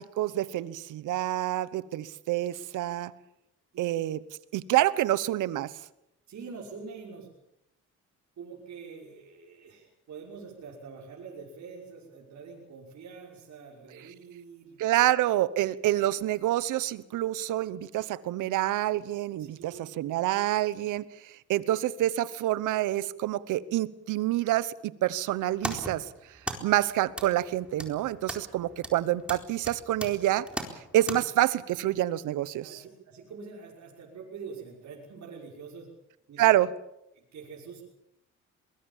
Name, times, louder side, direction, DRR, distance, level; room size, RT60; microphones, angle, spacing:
voice 1, 0.0-3.1 3.8-4.2 4.5-5.7 14.8-26.0 26.6-30.5 30.9-32.8 36.4-36.7, right 14 dB, 85° right, 17 dB, 1.1 m, -27 dB
voice 2, 6.3-7.3 8.4-15.0 19.4-20.0 28.9-29.1 32.6-35.9 36.3-36.5 37.1-37.8, right 5 dB, 65° right, -3 dB, 5.9 m, -45 dB
sound 1, 25.3-31.2, right 1 dB, 5° right, 4.2 m, -39 dB
23.0 x 22.0 x 7.3 m, 0.84 s
cardioid pair, 90°, 30 cm